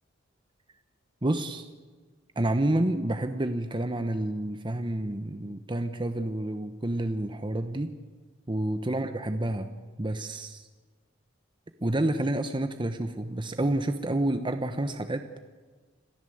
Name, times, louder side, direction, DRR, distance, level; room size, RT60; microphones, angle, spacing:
voice 1, 1.2-1.7 2.4-7.9 8.5-9.7 10.0-10.7 11.8-15.2, right 1 dB, 25° right, 8 dB, 0.9 m, -29 dB
27.0 x 16.0 x 7.9 m, 1.4 s
head